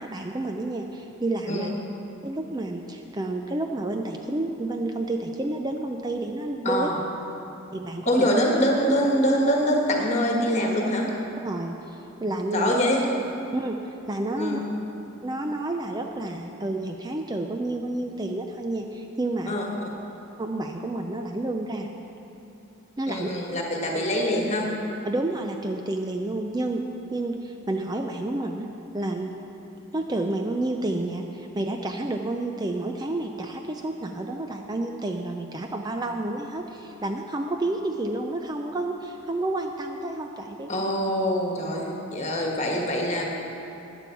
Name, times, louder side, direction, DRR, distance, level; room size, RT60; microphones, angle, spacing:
voice 1, 0.0-1.7 2.2-6.9 7.7-8.3 11.4-12.7 13.5-14.6 15.2-19.5 20.4-21.9 23.0-23.3 25.0-26.8 27.1-28.7 28.9-29.3 29.9-40.7, right 2 dB, 20° right, 3 dB, 0.4 m, -30 dB
voice 2, 6.6-7.0 8.0-11.1 12.5-13.0 14.4-14.6 19.5-19.6 23.1-24.7 40.7-43.2, equal, 30° left, 0 dB, 1.5 m, -24 dB
14.0 x 9.8 x 4.6 m, 3.0 s
head